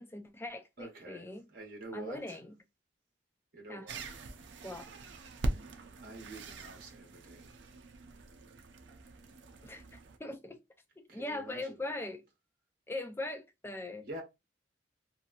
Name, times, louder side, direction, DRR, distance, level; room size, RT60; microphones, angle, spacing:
voice 1, 0.0-1.5 1.9-2.6 3.7-3.9 4.6-4.9 9.6-10.6 11.0-12.3 12.9-14.1, left 2 dB, 10° left, 0.3 m, -41 dB
voice 2, 0.8-1.2 1.5-2.4 3.5-4.1 6.0-7.5 11.1-12.0 14.0-14.2, right 1 dB, 50° right, 0.9 m, -47 dB
sound 1, 3.9-10.2, right 1 dB, 75° right, 0.5 m, -42 dB
2.8 x 2.6 x 2.4 m
head